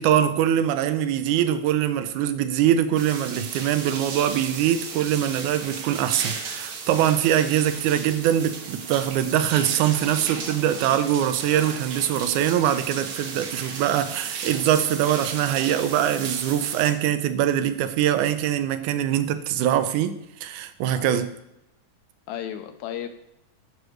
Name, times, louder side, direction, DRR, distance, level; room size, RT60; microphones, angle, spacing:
voice 1, 0.0-21.3, right 10 dB, 85° right, 11 dB, 2.0 m, -23 dB
sound 1, 3.0-16.9, right 5 dB, 65° right, 1.4 m, -35 dB
voice 2, 20.9-21.3 22.3-23.1, left 10 dB, 80° left, 7 dB, 2.0 m, -34 dB
11.5 x 6.2 x 3.2 m, 0.85 s
omnidirectional pair, 3.5 m